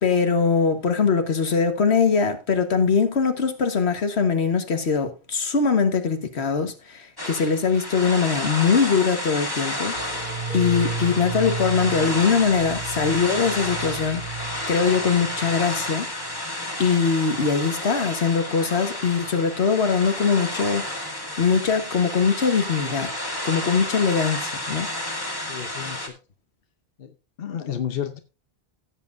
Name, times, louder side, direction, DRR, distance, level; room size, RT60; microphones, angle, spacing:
voice 1, 0.0-10.0 10.2-14.2 14.7-16.1 16.8-20.8 21.4-23.1 23.4-24.9, left 5 dB, 90° left, 1.7 m, -22 dB
sound 1, 7.2-26.1, left 1 dB, 20° left, 1.9 m, -31 dB
sound 2, 9.9-15.9 16.2-16.4, right 4 dB, 55° right, 6.1 m, -34 dB
voice 2, 25.5-26.2 27.0-27.1 27.4-28.2, left 9 dB, 65° left, 1.1 m, -31 dB
16.0 x 7.7 x 2.6 m
omnidirectional pair, 1.1 m